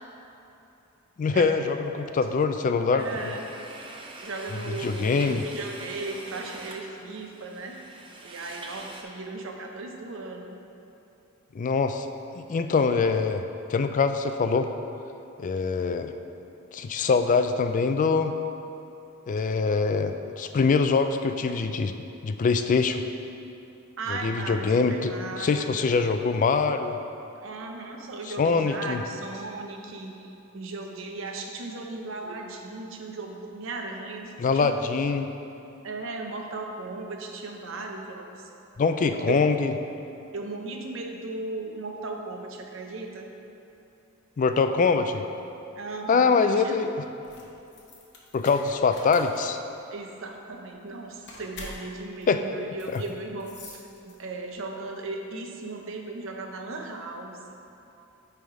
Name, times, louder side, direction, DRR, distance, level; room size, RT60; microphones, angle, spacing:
voice 1, 1.2-3.1 4.8-5.4 11.5-12.1 12.3-13.4 13.7-14.7 15.4-16.1 16.7-18.3 19.3-21.9 22.2-23.0 24.1-27.0 28.4-29.0 34.4-35.3 38.8-39.7 44.4-45.2 46.1-46.9 48.3-49.6 52.3-52.4 52.9-53.0, left 4 dB, 40° left, 8 dB, 0.3 m, -24 dB
voice 2, 2.9-3.5 4.2-7.8 8.2-10.4 24.0-25.7 27.4-34.8 35.8-38.5 39.0-39.4 40.3-43.3 45.8-46.9 49.9-57.4, right 3 dB, 65° right, 2 dB, 0.7 m, -37 dB
sound 1, 3.0-9.0, right 2 dB, 25° right, 0.5 m, -44 dB
sound 2, 47.2-54.5, left 2 dB, 55° left, 1.0 m, -46 dB
9.2 x 3.5 x 4.7 m, 2.8 s
head